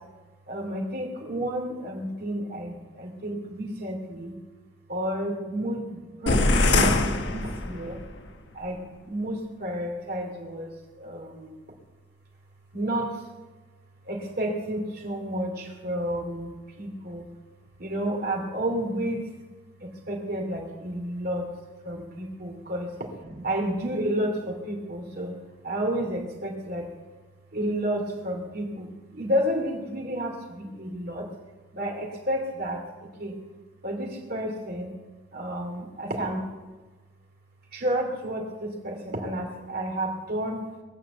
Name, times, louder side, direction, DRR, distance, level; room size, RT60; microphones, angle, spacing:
voice 1, 0.5-4.4 4.9-8.0 8.5-11.5 12.7-13.2 14.1-17.3 17.8-19.2 19.8-21.5 21.8-22.9 23.2-25.3 25.6-26.9 27.5-31.3 31.7-32.8 33.2-33.4 33.8-34.9 35.3-36.4 37.7-40.6, right 1 dB, 50° right, 1 dB, 2.8 m, -31 dB
sound 1, 6.3-8.1, left 2 dB, 60° left, 1.3 m, -23 dB
21.0 x 7.7 x 8.1 m, 1.2 s
head